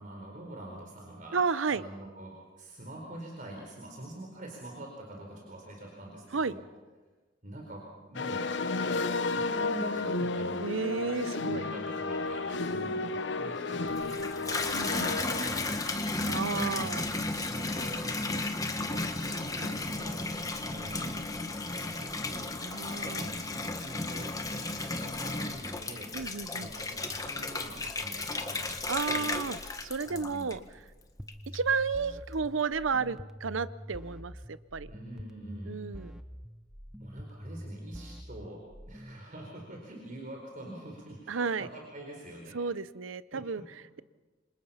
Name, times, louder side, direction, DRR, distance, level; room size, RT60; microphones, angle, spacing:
voice 1, 0.0-6.7 7.4-8.5 9.2-10.7 11.4-16.0 16.7-18.5 18.7-22.0 22.3-22.8 23.1-26.1 26.5-29.3 30.1-30.5 34.9-35.8 37.0-42.6 43.3-43.6, right 1 dB, 45° right, 0 dB, 4.3 m, -45 dB
voice 2, 1.3-1.8 6.3-6.5 10.6-11.6 14.7-15.2 16.3-17.0 19.6-19.7 22.6-23.3 26.1-26.7 28.9-30.8 31.5-34.9 35.6-36.1 41.3-41.7 42.5-44.0, right 5 dB, 85° right, 16 dB, 0.7 m, -32 dB
sound 1, 8.2-15.6, left 3 dB, 65° left, 0.9 m, -32 dB
Water tap faucet / Bathtub (filling or washing), 13.9-30.8 31.3-31.9, left 2 dB, 20° left, 1.5 m, -34 dB
sound 2, 31.2-39.2, equal, 5° right, 0.8 m, -45 dB
28.0 x 26.0 x 5.8 m, 1.3 s
head